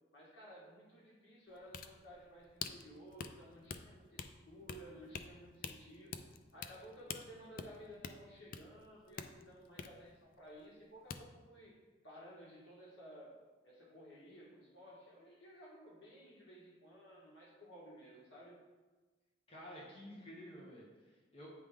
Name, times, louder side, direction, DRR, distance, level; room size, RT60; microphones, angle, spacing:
voice 1, 0.1-6.3 6.5-11.8 12.0-18.6, equal, 70° left, -4 dB, 1.7 m, -55 dB
sound 1, 1.5-10.8 11.1-11.2, left 6 dB, 45° left, 0.3 m, -47 dB
voice 2, 19.5-21.5, equal, 30° left, -6 dB, 1.1 m, -52 dB
8.7 x 3.4 x 3.7 m, 1.2 s
head